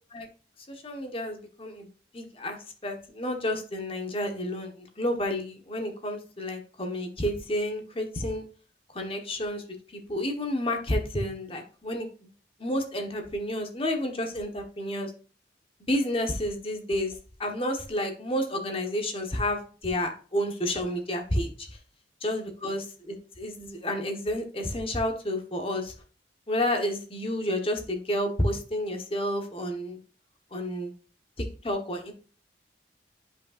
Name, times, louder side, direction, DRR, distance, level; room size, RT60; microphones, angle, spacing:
voice 1, 0.7-1.9 2.1-2.6 2.8-8.4 8.9-9.6 9.9-12.1 12.6-15.1 15.9-21.8 22.2-25.9 26.5-30.0 30.5-30.9 31.4-32.1, left 1 dB, 30° left, 4 dB, 1.1 m, -30 dB
10.0 x 5.5 x 2.5 m, 0.39 s
head